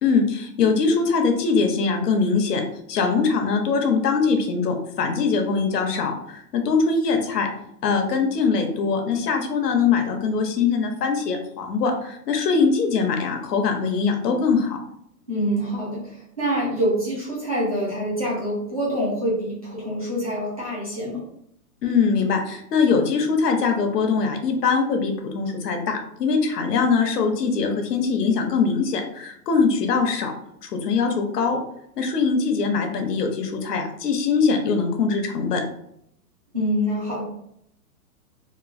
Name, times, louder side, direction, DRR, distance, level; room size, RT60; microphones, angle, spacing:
voice 1, 0.0-2.6 2.9-7.5 7.8-14.8 21.8-30.3 30.6-31.6 32.0-35.6, left 5 dB, 75° left, 4 dB, 0.8 m, -22 dB
voice 2, 15.3-21.3 36.5-37.2, equal, 25° right, -7 dB, 0.4 m, -26 dB
3.0 x 2.3 x 2.5 m, 0.73 s
hypercardioid pair, 165°, 48 cm